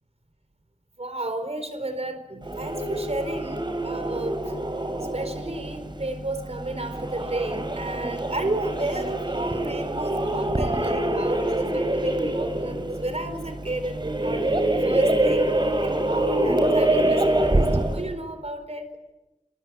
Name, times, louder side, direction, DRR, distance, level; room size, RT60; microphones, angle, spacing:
voice 1, 1.0-4.6 5.0-15.5 15.8-18.9, right 2 dB, 55° right, 8 dB, 4.5 m, -32 dB
sound 1, 2.4-18.1, right 1 dB, 35° right, 3.6 m, -25 dB
28.0 x 19.5 x 9.0 m, 1.0 s
wide cardioid pair, 60°, 13 cm